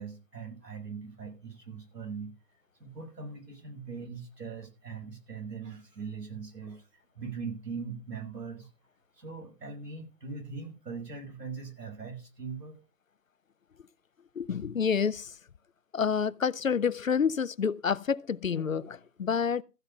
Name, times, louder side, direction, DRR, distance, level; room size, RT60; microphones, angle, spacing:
voice 1, 0.0-2.3 2.8-8.7 9.2-12.8, right 5 dB, 80° right, 6.3 m, -41 dB
voice 2, 14.4-15.3 15.9-19.6, left 6 dB, 55° left, 0.7 m, -28 dB
14.5 x 7.8 x 5.4 m
hypercardioid pair, 170°, 48 cm